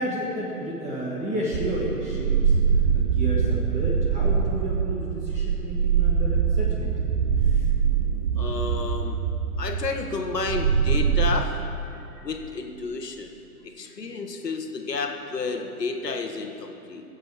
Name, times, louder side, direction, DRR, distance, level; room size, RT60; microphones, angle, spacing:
voice 1, 0.0-7.0 7.4-7.7 12.0-12.3, right 1 dB, 15° right, -4 dB, 1.6 m, -32 dB
sound 1, 1.5-11.4, right 6 dB, 40° right, 0.6 m, -23 dB
voice 2, 8.4-9.2 9.6-11.5 12.2-13.3 13.8-17.0, left 4 dB, 90° left, 3 dB, 1.5 m, -31 dB
21.5 x 7.6 x 4.8 m, 3.0 s
hypercardioid pair, 125°, 47 cm